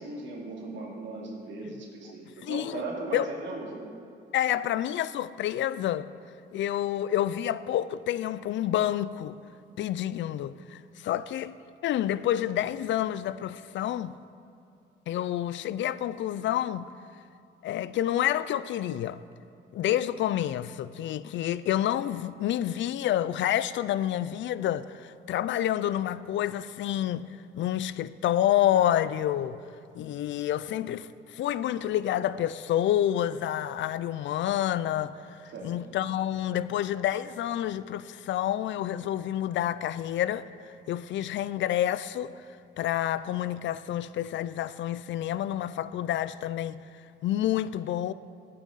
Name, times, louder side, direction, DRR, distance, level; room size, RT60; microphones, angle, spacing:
voice 1, 0.0-3.8 35.5-35.7, right 2 dB, 65° right, 2.9 m, -37 dB
voice 2, 2.4-2.8 3.1-3.2 4.3-6.1 6.5-9.4 9.8-11.6 11.8-14.1 15.1-16.9 17.6-19.2 19.7-27.3 27.5-29.6 29.9-40.4 40.9-42.3 42.8-46.8 47.2-48.1, left 12 dB, 70° left, 0.5 m, -28 dB
17.0 x 8.7 x 4.1 m
cardioid pair, 90°, 20 cm